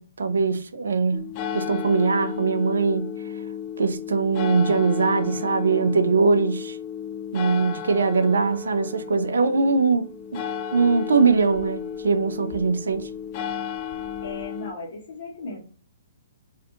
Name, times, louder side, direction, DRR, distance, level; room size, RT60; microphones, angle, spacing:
voice 1, 0.0-3.1 3.8-6.8 7.3-10.0 10.3-10.4 10.7-13.1, right 4 dB, 80° right, 0.4 m, -22 dB
sound 1, 1.1-14.7, left 8 dB, 35° left, 0.3 m, -33 dB
voice 2, 14.2-15.6, left 3 dB, 65° left, 1.1 m, -36 dB
2.5 x 2.4 x 2.5 m
hypercardioid pair, 135°, 0 cm